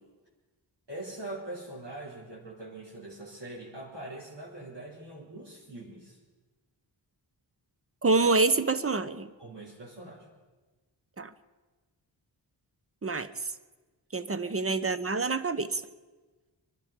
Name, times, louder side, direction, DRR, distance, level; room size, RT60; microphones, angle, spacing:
voice 1, 0.9-6.2 9.4-10.3 14.4-14.5, right 1 dB, 60° right, -5 dB, 4.0 m, -42 dB
voice 2, 8.0-9.3 11.2-11.3 13.0-13.5 14.1-15.8, right 3 dB, 30° right, 13 dB, 0.8 m, -27 dB
23.5 x 12.0 x 5.2 m, 1.3 s
wide cardioid pair, 70°, 46 cm